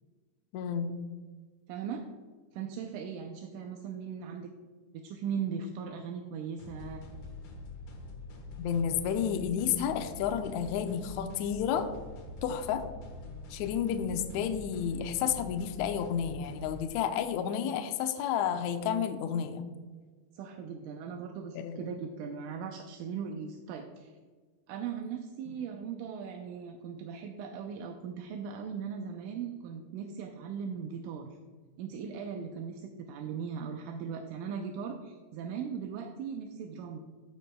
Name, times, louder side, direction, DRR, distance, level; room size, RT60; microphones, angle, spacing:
voice 1, 0.5-0.9 8.6-11.9 12.4-12.9 13.5-19.6 21.5-21.9 25.5-25.6, left 8 dB, 85° left, 7 dB, 1.6 m, -31 dB
voice 2, 1.7-2.1 2.5-4.5 4.9-7.0 20.3-24.1 24.7-31.3 31.8-37.0, right 6 dB, 80° right, 3 dB, 2.0 m, -38 dB
sound 1, 6.6-16.9, left 3 dB, 70° left, 2.6 m, -45 dB
15.0 x 6.4 x 2.2 m, 1.4 s
omnidirectional pair, 3.8 m